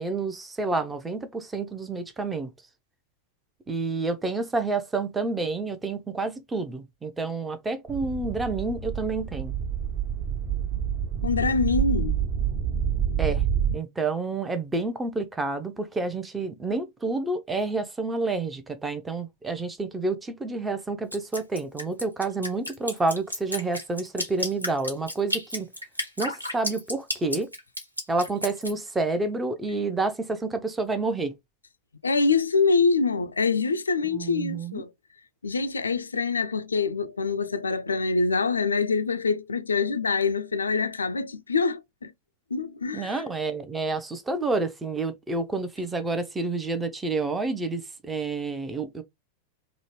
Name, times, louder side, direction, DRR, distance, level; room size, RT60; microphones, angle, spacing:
voice 1, 0.0-2.5 3.7-9.5 13.2-13.4 13.7-25.7 26.2-27.5 28.1-31.3 34.1-34.8 42.9-49.0, right 3 dB, 10° right, 0.6 m, -29 dB
sound 1, 7.9-13.8, right 8 dB, 35° right, 1.2 m, -28 dB
voice 2, 11.2-12.2 32.0-34.9 35.4-42.1 42.5-43.2, left 4 dB, 75° left, 0.3 m, -25 dB
Drip, 21.1-28.7, equal, 85° right, 0.9 m, -32 dB
3.8 x 2.1 x 3.1 m
figure-of-eight pair, 90°, 0 cm